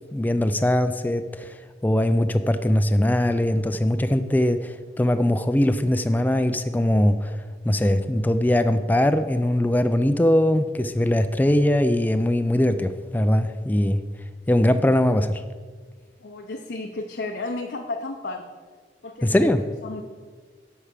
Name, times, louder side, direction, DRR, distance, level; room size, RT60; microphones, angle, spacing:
voice 1, 0.1-1.6 1.8-7.4 7.6-14.0 14.5-15.4 19.2-19.6, left 1 dB, 10° left, 9 dB, 0.3 m, -21 dB
voice 2, 16.2-18.5 19.0-19.5 19.8-20.0, left 2 dB, 70° left, 3 dB, 0.7 m, -32 dB
8.2 x 5.7 x 7.5 m, 1.5 s
head